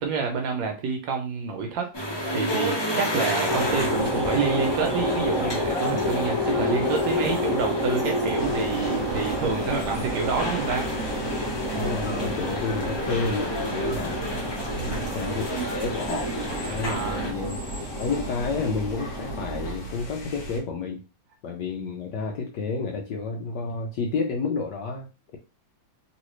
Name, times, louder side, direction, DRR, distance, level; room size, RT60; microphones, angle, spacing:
voice 1, 0.0-1.9 2.3-10.8 14.7-15.2 16.8-17.3, right 5 dB, 75° right, 3 dB, 1.3 m, -28 dB
sound 1, 1.9-17.3, left 1 dB, 35° left, 0.4 m, -32 dB
sound 2, 3.5-19.7, left 1 dB, 15° right, 1.6 m, -30 dB
sound 3, 8.4-20.6, right 1 dB, 55° left, 1.3 m, -36 dB
voice 2, 11.8-14.2 15.1-16.4 16.6-17.6 18.0-21.0 21.4-25.1, left 4 dB, 70° left, 1 dB, 1.1 m, -30 dB
3.1 x 3.0 x 3.1 m, 0.30 s
omnidirectional pair, 2.2 m